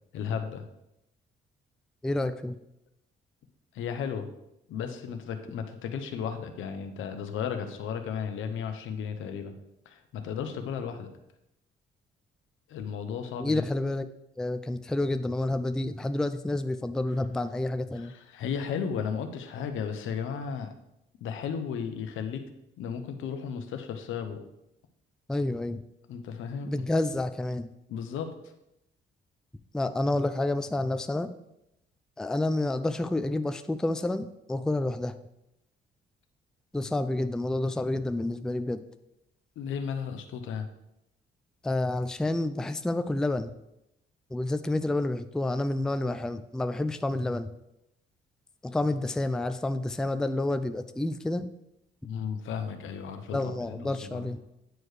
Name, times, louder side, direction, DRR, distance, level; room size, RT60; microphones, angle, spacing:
voice 1, 0.1-0.7 3.7-4.3 4.7-9.5 9.9-11.1 12.7-13.6 17.9-20.7 21.2-22.4 22.8-24.4 26.1-26.8 27.9-28.3 39.6-40.7 52.0-54.3, left 7 dB, 80° left, 7 dB, 0.8 m, -34 dB
voice 2, 2.0-2.5 13.4-14.1 14.4-18.1 25.3-25.8 26.6-27.7 29.7-31.3 32.2-35.1 36.7-38.8 41.6-43.5 44.3-47.5 48.6-51.5 53.3-54.4, left 2 dB, 5° left, 10 dB, 0.3 m, -29 dB
9.1 x 4.6 x 3.2 m, 0.86 s
cardioid pair, 90°, 20 cm